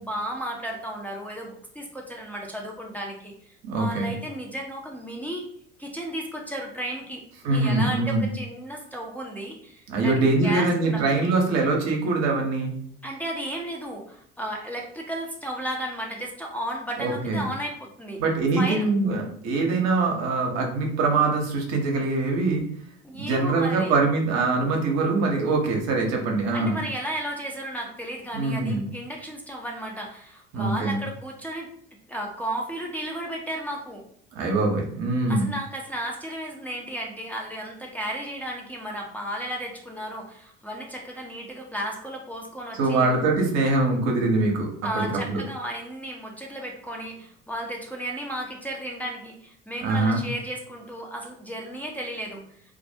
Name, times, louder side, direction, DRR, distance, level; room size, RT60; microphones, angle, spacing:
voice 1, 0.0-3.3 3.7-5.5 5.8-7.2 7.5-11.0 13.0-18.2 18.6-18.9 23.0-23.9 26.5-31.7 32.1-34.0 35.3-43.1 44.8-52.4, right 1 dB, 5° left, -2 dB, 0.5 m, -34 dB
voice 2, 3.6-4.1 7.4-8.3 9.9-12.7 17.0-17.5 18.2-22.6 23.2-26.8 28.3-28.9 30.5-31.0 34.3-35.5 42.7-44.7 44.9-45.4 49.8-50.2, right 3 dB, 60° right, 1 dB, 0.7 m, -23 dB
2.4 x 2.0 x 2.6 m, 0.64 s
hypercardioid pair, 70°, 29 cm